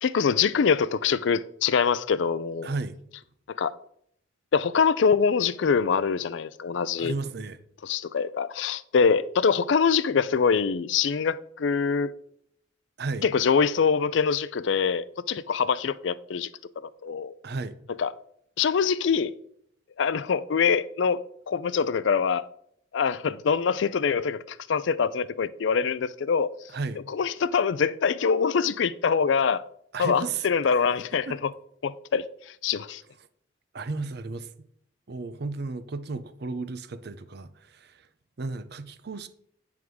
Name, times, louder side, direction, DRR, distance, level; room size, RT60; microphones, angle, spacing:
voice 1, 0.0-2.7 3.6-3.7 4.5-7.1 7.8-12.1 13.2-16.5 16.8-17.3 18.0-18.1 18.6-19.3 20.0-22.4 22.9-26.5 27.1-29.6 30.0-31.5 31.8-32.3 32.6-33.0, left 6 dB, 70° left, 0.4 m, -24 dB
voice 2, 2.6-3.0 7.0-7.6 13.0-13.3 17.4-17.8 26.7-27.0 29.9-30.5 31.3-31.4 33.7-34.5 35.1-38.1 38.4-39.3, right 3 dB, 55° right, 0.6 m, -33 dB
9.4 x 3.6 x 6.1 m
head